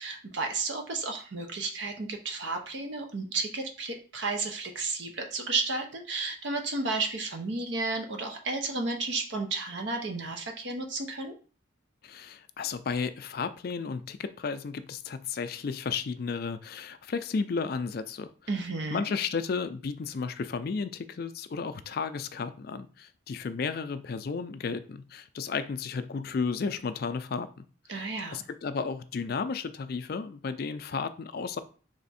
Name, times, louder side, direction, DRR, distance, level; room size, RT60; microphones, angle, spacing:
voice 1, 0.0-11.3 18.5-19.0 27.9-28.4, right 3 dB, 60° right, 4 dB, 0.7 m, -32 dB
voice 2, 12.0-18.3 18.9-31.6, left 5 dB, 50° left, 11 dB, 0.3 m, -33 dB
3.5 x 3.3 x 4.1 m, 0.39 s
head